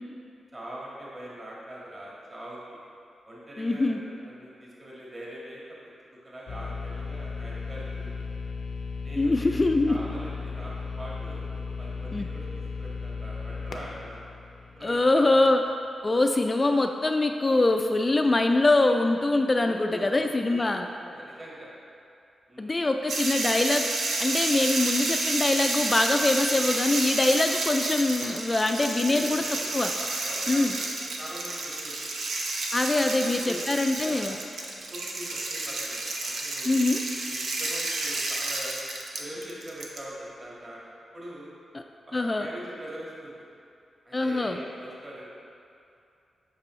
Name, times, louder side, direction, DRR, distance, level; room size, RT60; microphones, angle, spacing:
voice 1, 0.5-2.8 3.2-5.8 6.2-8.3 9.0-11.5 11.8-12.5 12.8-14.3 14.8-15.4 18.0-18.3 19.6-21.7 22.5-23.0 28.4-29.7 30.0-32.2 33.0-33.7 34.0-34.4 34.9-36.9 37.3-38.8 39.2-41.5 42.1-43.5 44.0-45.3, right 1 dB, 30° right, -6 dB, 1.7 m, -43 dB
voice 2, 3.6-4.0 9.2-10.0 12.1-12.3 14.8-15.6 16.0-20.9 22.6-23.8 24.2-29.4 29.7-29.9 30.5-30.7 32.7-34.4 36.7-37.0 42.1-42.5 44.1-44.6, left 2 dB, 25° left, 5 dB, 0.3 m, -23 dB
sound 1, 6.5-15.4, left 4 dB, 85° left, 0.6 m, -36 dB
sound 2, 23.1-40.0, right 2 dB, 80° right, 0.8 m, -30 dB
8.3 x 6.0 x 3.1 m, 2.6 s
cardioid pair, 95°, 0 cm